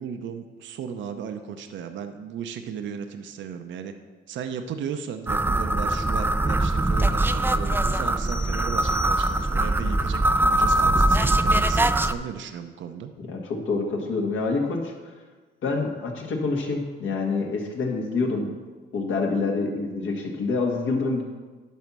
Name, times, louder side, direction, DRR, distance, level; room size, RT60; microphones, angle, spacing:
voice 1, 0.0-3.9 4.3-13.1, right 7 dB, 70° right, 7 dB, 0.7 m, -35 dB
sound 1, 5.3-12.1, right 1 dB, 10° right, 0.4 m, -22 dB
sound 2, 8.3-9.8, left 2 dB, 45° left, 1.9 m, -41 dB
voice 2, 13.2-14.9 15.6-18.5 18.9-21.2, left 3 dB, 75° left, 1 dB, 1.7 m, -26 dB
11.0 x 4.3 x 6.1 m, 1.4 s
cardioid pair, 90°, 20 cm